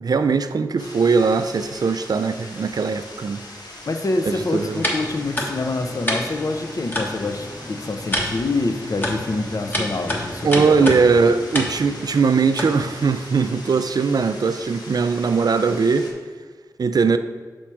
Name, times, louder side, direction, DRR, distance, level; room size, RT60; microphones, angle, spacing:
voice 1, 0.0-3.4 4.2-4.8 10.4-16.1 16.8-17.2, right 5 dB, 65° right, 0.4 m, -20 dB
sound 1, 0.8-16.1, left 1 dB, 70° left, 1.0 m, -40 dB
voice 2, 3.9-10.9, left 2 dB, 50° left, 0.6 m, -26 dB
sound 2, 4.2-13.1, equal, 30° left, 1.3 m, -29 dB
6.1 x 4.3 x 4.5 m
wide cardioid pair, 60°, 7 cm